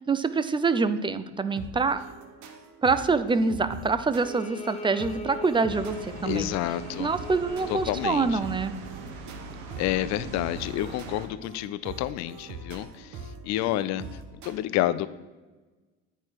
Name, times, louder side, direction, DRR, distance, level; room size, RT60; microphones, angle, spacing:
voice 1, 0.0-2.1 2.8-6.5 7.0-8.7, right 4 dB, 15° right, 12 dB, 0.4 m, -25 dB
sound 1, 1.6-14.5, right 4 dB, 60° right, 1.2 m, -43 dB
Bowed string instrument, 4.2-8.4, left 2 dB, 20° left, 0.8 m, -41 dB
sound 2, 5.7-11.3, right 3 dB, 85° right, 1.1 m, -41 dB
voice 2, 6.2-7.1 7.7-8.4 9.8-13.2 13.4-14.0 14.4-15.1, left 14 dB, 60° left, 14 dB, 0.5 m, -29 dB
8.6 x 4.5 x 4.5 m, 1.2 s
supercardioid pair, 95°, 32 cm